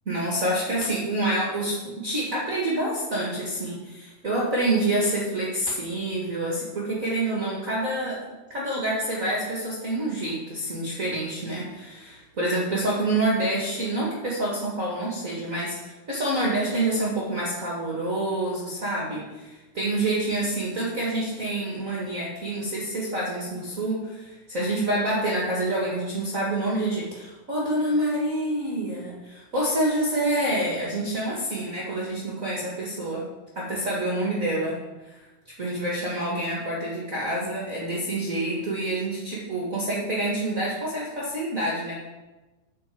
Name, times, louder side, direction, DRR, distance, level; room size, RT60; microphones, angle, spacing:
voice 1, 0.0-8.2 8.5-33.2 33.5-34.8 35.1-35.2 35.6-42.0, right 1 dB, 60° right, -4 dB, 0.8 m, -27 dB
8.6 x 6.0 x 7.6 m, 1.1 s
omnidirectional pair, 4.9 m